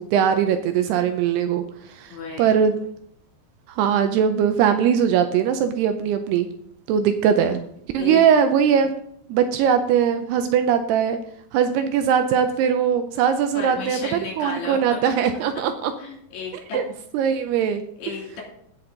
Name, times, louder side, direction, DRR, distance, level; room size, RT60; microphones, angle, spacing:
voice 1, 0.0-2.8 3.7-6.5 6.9-7.6 7.9-8.9 9.3-11.2 11.5-15.9 16.7-16.8 17.1-17.8 18.1-18.2, right 8 dB, 85° right, 8 dB, 2.5 m, -20 dB
voice 2, 2.1-2.6 7.9-8.2 13.5-15.0 16.0-16.8 18.0-18.4, left 4 dB, 70° left, -1 dB, 4.9 m, -33 dB
16.0 x 6.1 x 3.9 m, 0.69 s
omnidirectional pair, 5.1 m